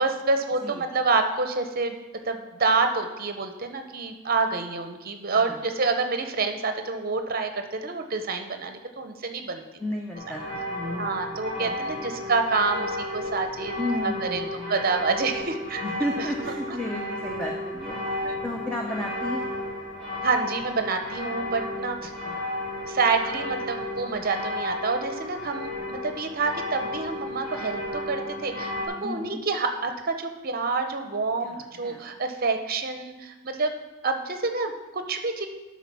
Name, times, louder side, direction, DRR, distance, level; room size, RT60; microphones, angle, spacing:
voice 1, 0.0-2.0 2.2-9.6 11.0-15.8 16.2-16.3 16.7-16.8 18.2-18.4 20.2-22.1 22.9-28.7 29.0-33.7 34.0-35.5, right 4 dB, 45° right, 7 dB, 0.7 m, -27 dB
voice 2, 9.8-12.3 13.8-14.7 15.8-19.5 22.2-22.3 29.0-29.4 31.4-32.1, left 1 dB, 5° left, 0 dB, 0.6 m, -33 dB
sound 1, 10.1-28.9, left 1 dB, 45° left, 2.6 m, -33 dB
11.0 x 4.2 x 6.1 m, 1.1 s
head